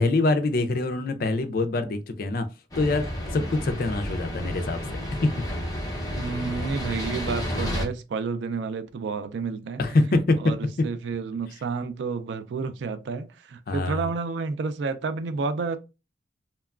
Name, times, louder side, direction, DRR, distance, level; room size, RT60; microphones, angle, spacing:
voice 1, 0.0-2.4 2.8-3.0 3.3-5.3 9.8-10.4 13.7-14.1, left 2 dB, 55° left, 0.4 m, -24 dB
sound 1, 2.7-7.8, equal, 20° left, 0.7 m, -31 dB
voice 2, 6.2-9.8 10.4-10.6 10.8-15.8, right 4 dB, 80° right, 0.3 m, -30 dB
2.9 x 2.2 x 2.3 m
head